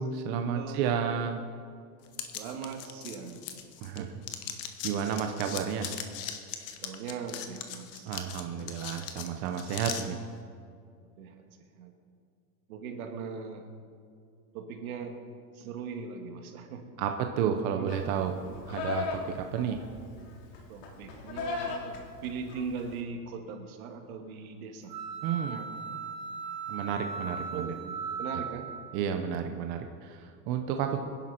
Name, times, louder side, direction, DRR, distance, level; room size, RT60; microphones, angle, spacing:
voice 1, 0.0-1.4 3.8-4.1 4.8-5.9 8.0-10.2 17.0-17.1 17.4-18.3 18.7-19.8 25.2-25.6 26.7-27.7 28.9-31.0, right 8 dB, 20° right, 5 dB, 0.5 m, -31 dB
voice 2, 0.5-0.9 2.3-3.6 4.0-4.2 6.8-8.1 11.2-11.4 11.8-11.9 12.7-13.7 14.5-15.2 15.5-16.9 17.8-17.9 18.5-18.6 20.7-25.0 25.4-25.6 27.5-28.7, right 5 dB, 60° right, 4 dB, 2.3 m, -40 dB
sound 1, 2.1-4.0 4.2-10.0, left 9 dB, 30° left, 1.1 m, -39 dB
Livestock farm animals working animals, 17.9-23.0, left 4 dB, 85° left, 3.1 m, -38 dB
sound 2, 24.9-29.0, right 5 dB, 90° right, 3.8 m, -38 dB
26.0 x 11.0 x 4.3 m, 2.3 s
supercardioid pair, 160°, 48 cm